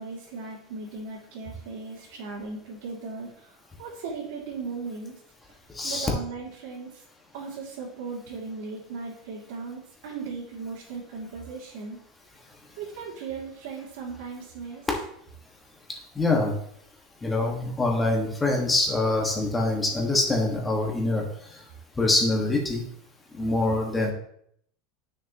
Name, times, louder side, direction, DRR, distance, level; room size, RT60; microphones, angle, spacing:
voice 1, 0.0-3.5 3.8-5.1 5.8-6.9 7.3-12.0 12.8-14.8, right 4 dB, 75° right, -5 dB, 2.7 m, -37 dB
voice 2, 5.7-6.1 16.1-16.5 17.2-21.2 21.5-21.6 22.0-22.8 23.3-24.1, left 2 dB, 10° left, 0 dB, 1.7 m, -24 dB
10.0 x 6.6 x 3.0 m, 0.69 s
supercardioid pair, 155°, 0 cm